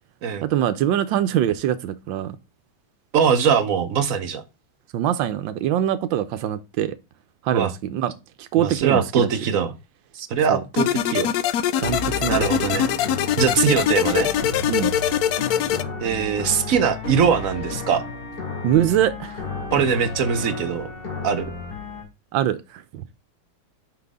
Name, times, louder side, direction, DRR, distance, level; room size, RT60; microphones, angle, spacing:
voice 1, 0.4-2.4 4.9-6.9 7.4-8.1 8.4-9.3 10.5-10.6 11.8-12.4 14.7-14.9 18.6-19.4 22.3-22.6 22.9-23.0, right 11 dB, 90° right, 1.4 m, -23 dB
voice 2, 3.1-4.4 7.5-7.7 8.6-9.7 10.1-11.3 12.3-12.9 13.4-14.3 16.0-18.0 19.7-20.9 21.2-21.5, right 7 dB, 60° right, 1.0 m, -21 dB
sound 1, 10.8-15.8, left 10 dB, 75° left, 0.9 m, -23 dB
sound 2, 11.8-22.0, left 3 dB, 55° left, 2.7 m, -32 dB
5.9 x 5.6 x 3.5 m
omnidirectional pair, 2.1 m